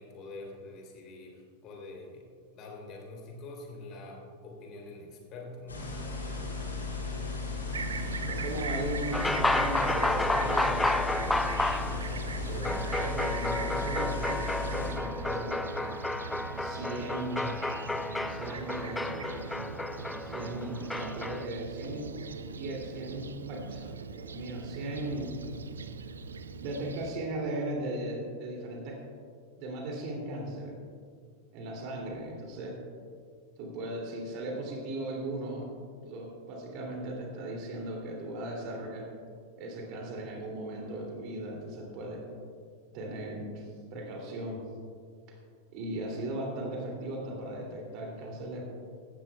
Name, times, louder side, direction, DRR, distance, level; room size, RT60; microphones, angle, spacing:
voice 1, 0.0-2.2 2.5-5.9, left 2 dB, 35° left, 0 dB, 3.2 m, -45 dB
sound 1, 5.7-14.9, left 4 dB, 75° left, 3.1 m, -36 dB
Fixed-wing aircraft airplane, 7.7-27.1, right 5 dB, 70° right, 0.5 m, -40 dB
voice 2, 8.2-11.0 12.5-15.7 16.6-17.5 18.3-19.2 20.2-22.1 22.6-25.3 26.6-29.0 29.6-30.7 31.5-32.8 33.6-35.7 36.0-39.1 39.6-42.2 42.9-44.6 45.7-48.7, right 1 dB, 40° right, 0 dB, 2.7 m, -37 dB
sound 2, 9.1-21.5, left 2 dB, 5° left, 0.4 m, -31 dB
16.5 x 14.0 x 2.3 m, 2.1 s
figure-of-eight pair, 90°, 0 cm